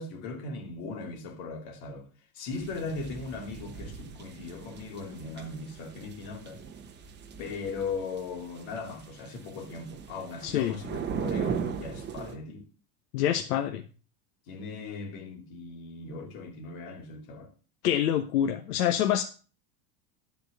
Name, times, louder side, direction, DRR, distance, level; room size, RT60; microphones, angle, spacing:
voice 1, 0.0-2.1 2.3-6.6 7.4-12.7 14.5-17.5, left 4 dB, 55° left, 2.8 m, -38 dB
sound 1, 2.5-12.4, right 6 dB, 25° right, 1.0 m, -38 dB
voice 2, 10.4-10.8 13.1-13.8 17.8-19.2, left 10 dB, 85° left, 1.1 m, -26 dB
13.0 x 4.6 x 6.5 m
supercardioid pair, 140°, 45 cm